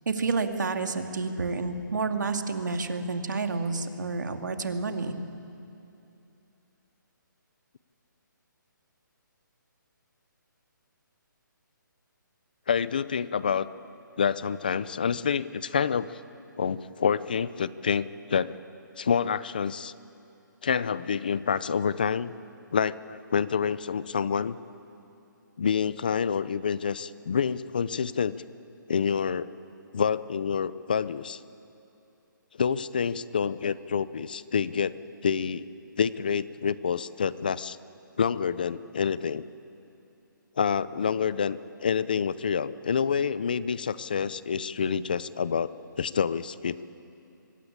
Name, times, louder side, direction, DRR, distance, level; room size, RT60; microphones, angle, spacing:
voice 1, 0.1-5.1, right 4 dB, 60° right, 5 dB, 2.5 m, -29 dB
voice 2, 12.7-13.7 14.2-16.2 16.6-18.5 19.0-19.9 20.6-22.3 22.7-24.6 25.6-28.4 28.9-29.5 29.9-31.4 32.6-34.9 35.2-35.7 36.0-37.8 38.2-39.4 40.6-46.8, left 6 dB, 25° left, 17 dB, 0.5 m, -27 dB
24.0 x 23.0 x 8.7 m, 2.8 s
hypercardioid pair, 180°, 11 cm